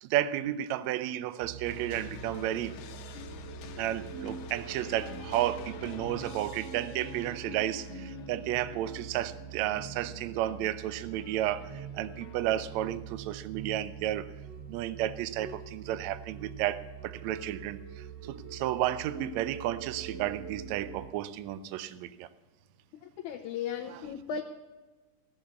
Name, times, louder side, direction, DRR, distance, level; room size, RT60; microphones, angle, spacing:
voice 1, 0.0-2.7 3.8-14.3 14.7-22.3 23.9-24.0, right 13 dB, 75° right, 14 dB, 1.7 m, -32 dB
sound 1, 1.4-21.1, right 7 dB, 60° right, 2.3 m, -44 dB
sound 2, 1.6-12.9, left 9 dB, 85° left, 2.6 m, -47 dB
voice 2, 23.2-24.4, left 7 dB, 70° left, 1 dB, 2.2 m, -35 dB
16.0 x 7.3 x 8.2 m, 1.2 s
omnidirectional pair, 3.8 m